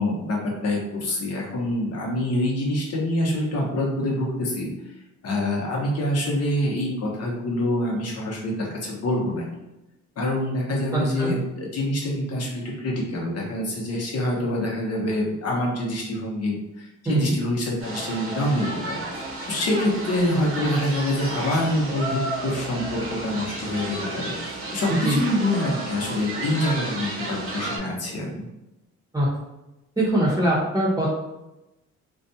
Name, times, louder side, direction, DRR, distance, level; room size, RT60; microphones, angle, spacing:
voice 1, 0.0-4.7 5.2-9.5 10.2-19.0 19.5-28.5, left 1 dB, 55° left, -2 dB, 0.9 m, -26 dB
voice 2, 10.9-11.3 17.0-17.3 25.0-25.2 29.1-29.3 30.0-31.1, right 1 dB, 10° right, -7 dB, 0.8 m, -22 dB
sound 1, 17.8-27.8, right 2 dB, 45° right, 0.8 m, -32 dB
2.5 x 2.2 x 2.7 m, 0.96 s
cardioid pair, 90°, 30 cm